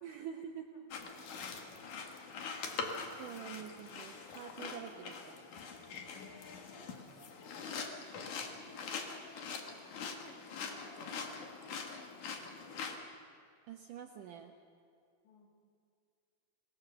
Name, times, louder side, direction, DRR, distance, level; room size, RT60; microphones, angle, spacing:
voice 1, 0.0-0.7 3.2-5.4 13.7-14.5, right 8 dB, 85° right, 3 dB, 1.8 m, -46 dB
voice 2, 0.7-2.6 6.1-7.9 8.2-12.9 15.2-15.5, left 3 dB, 70° left, 1 dB, 5.3 m, -59 dB
sound 1, 0.9-13.0, left 5 dB, 55° left, 2.7 m, -43 dB
27.5 x 19.5 x 7.0 m, 2.4 s
omnidirectional pair, 5.3 m